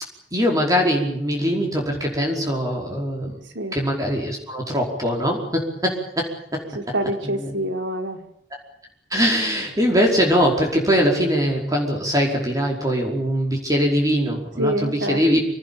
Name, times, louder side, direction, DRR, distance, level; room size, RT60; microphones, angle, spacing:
voice 1, 0.3-3.3 3.7-6.9 7.4-7.5 9.1-15.4, equal, 20° right, 0 dB, 5.1 m, -22 dB
voice 2, 3.3-3.8 6.7-8.2 14.6-15.2, right 1 dB, 75° right, 5 dB, 4.4 m, -26 dB
26.5 x 19.0 x 8.8 m, 0.71 s
head